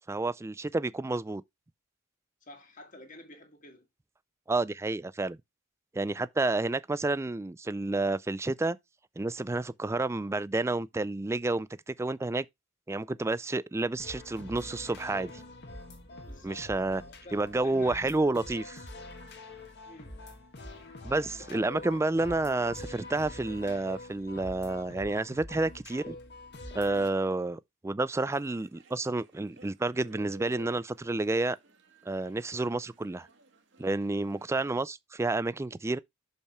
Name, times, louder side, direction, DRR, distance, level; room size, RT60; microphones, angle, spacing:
voice 1, 0.1-1.4 4.5-5.4 5.9-8.8 9.2-12.5 12.9-15.4 16.4-17.0 17.3-18.8 21.0-26.2 26.7-31.6 32.1-33.3 33.8-36.0, right 2 dB, 15° right, 0.3 m, -30 dB
voice 2, 2.4-3.9 16.3-16.7 17.0-18.2 19.9-20.2 21.5-22.1, left 2 dB, 40° left, 2.2 m, -50 dB
sound 1, 14.0-27.1, left 2 dB, 60° left, 1.9 m, -45 dB
sound 2, 28.3-34.8, right 2 dB, 65° right, 1.6 m, -56 dB
6.7 x 5.5 x 4.3 m
head